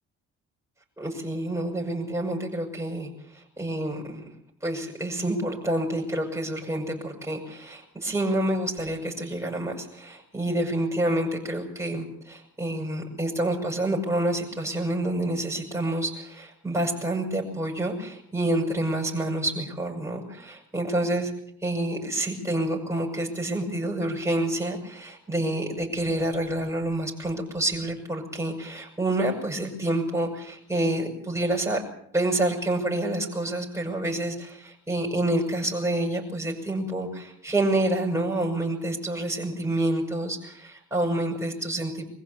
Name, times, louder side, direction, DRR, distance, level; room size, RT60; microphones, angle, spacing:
voice 1, 1.0-4.3 4.6-21.3 21.6-31.8 32.1-42.0, right 1 dB, 10° right, -1 dB, 7.3 m, -28 dB
24.5 x 15.5 x 8.7 m, 0.69 s
cardioid pair, 90°, 30 cm